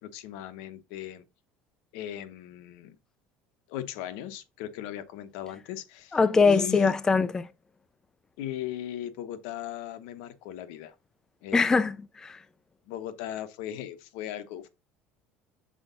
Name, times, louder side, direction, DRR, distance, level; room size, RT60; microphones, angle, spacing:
voice 1, 0.0-1.2 1.9-3.0 3.7-6.2 6.4-6.9 8.4-10.9 11.4-11.8 12.9-14.7, left 12 dB, 80° left, 0.9 m, -38 dB
voice 2, 6.1-7.5 11.5-12.4, left 4 dB, 15° left, 0.4 m, -22 dB
6.2 x 4.5 x 3.9 m
cardioid pair, 145°, 4 cm